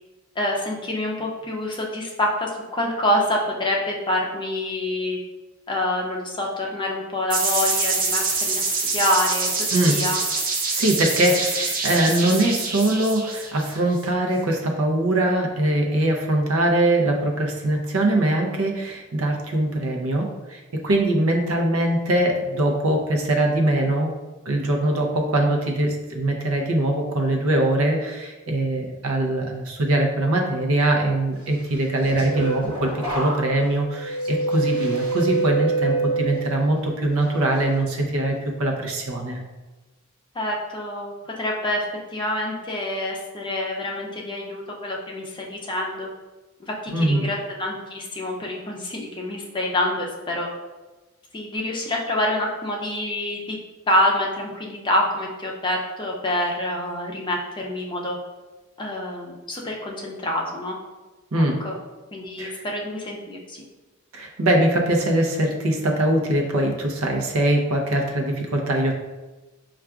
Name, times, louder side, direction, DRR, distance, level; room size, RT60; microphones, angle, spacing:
voice 1, 0.4-5.2 5.7-8.6 8.9-10.2 40.3-41.9 42.1-46.1 46.6-50.5 51.3-53.6 53.9-58.2 58.8-60.8 61.4-61.7 62.1-63.6, left 1 dB, 20° left, -1 dB, 0.5 m, -26 dB
sound 1, 7.3-14.0, right 3 dB, 40° right, 0.6 m, -25 dB
voice 2, 10.7-24.1 24.5-39.4 46.9-47.3 61.3-61.5 62.4-62.6 64.1-68.9, right 1 dB, 80° right, 1 dB, 0.6 m, -22 dB
sound 2, 31.7-36.8 37.2-37.6, right 3 dB, 20° right, 0.9 m, -26 dB
5.6 x 2.4 x 2.4 m, 1.2 s
head